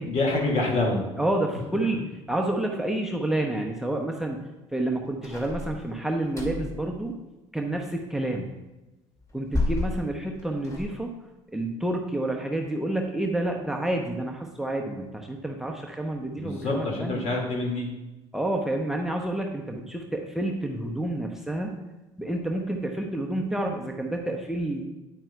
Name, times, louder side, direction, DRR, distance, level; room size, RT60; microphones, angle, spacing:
voice 1, 0.0-1.0 16.4-18.0, left 2 dB, 50° left, -1 dB, 2.2 m, -26 dB
voice 2, 1.2-2.0 2.3-4.4 4.7-7.1 7.5-8.5 9.3-11.1 11.5-17.2 18.3-21.7 22.2-24.8, right 1 dB, 5° right, 3 dB, 0.9 m, -29 dB
opening and closing diffrent windows, 5.2-6.8 9.2-10.9, left 2 dB, 20° left, 2.3 m, -31 dB
9.8 x 8.7 x 2.4 m, 1.0 s
figure-of-eight pair, 55°, 15 cm